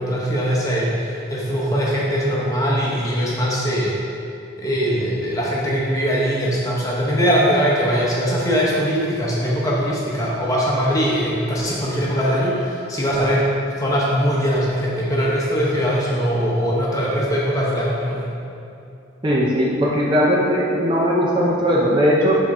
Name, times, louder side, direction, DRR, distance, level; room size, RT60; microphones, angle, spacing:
voice 1, 0.0-3.9 4.6-13.5 13.8-18.2, equal, 15° left, -5 dB, 0.9 m, -21 dB
voice 2, 19.2-22.4, equal, 25° right, -5 dB, 0.6 m, -18 dB
7.4 x 3.6 x 4.2 m, 2.7 s
head